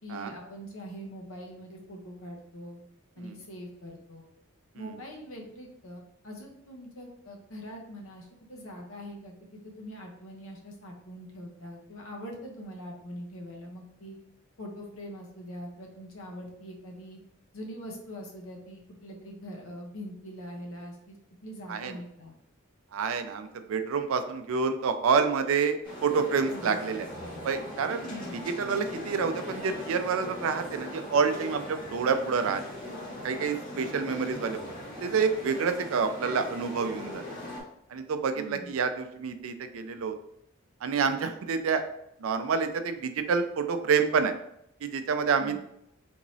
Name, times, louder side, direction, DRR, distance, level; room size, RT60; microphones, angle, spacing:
voice 1, 0.0-2.8 3.2-4.3 4.7-9.3 9.6-14.2 14.6-17.2 17.5-22.3 26.5-26.8 27.9-28.4 38.3-38.7 45.4-45.6, equal, 80° left, 1 dB, 0.8 m, -43 dB
voice 2, 22.9-27.1 27.4-28.0 28.5-32.6 33.2-34.6 35.0-37.2 37.9-40.2 40.8-41.8 42.2-44.3 44.8-45.6, right 5 dB, 80° right, 8 dB, 0.4 m, -28 dB
sound 1, 25.8-37.6, left 1 dB, 40° left, 1.4 m, -40 dB
3.6 x 3.0 x 2.6 m, 0.77 s
head